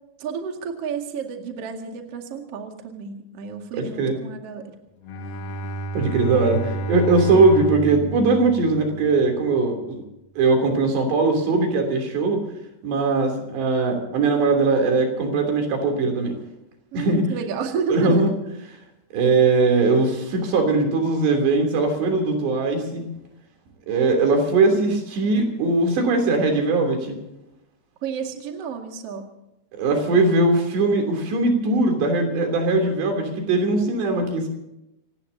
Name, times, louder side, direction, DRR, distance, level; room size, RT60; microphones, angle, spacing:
voice 1, 0.2-4.8 16.9-18.2 28.0-29.3, right 6 dB, 45° right, 3 dB, 2.6 m, -30 dB
voice 2, 3.7-4.2 5.9-10.0 10.4-12.4 12.8-16.4 16.9-17.2 17.9-18.3 19.1-23.1 23.9-27.2 29.7-34.5, right 3 dB, 80° right, 3 dB, 5.4 m, -20 dB
Bowed string instrument, 5.0-9.4, right 2 dB, 60° left, 2.0 m, -31 dB
27.5 x 18.0 x 2.8 m, 0.89 s
omnidirectional pair, 4.9 m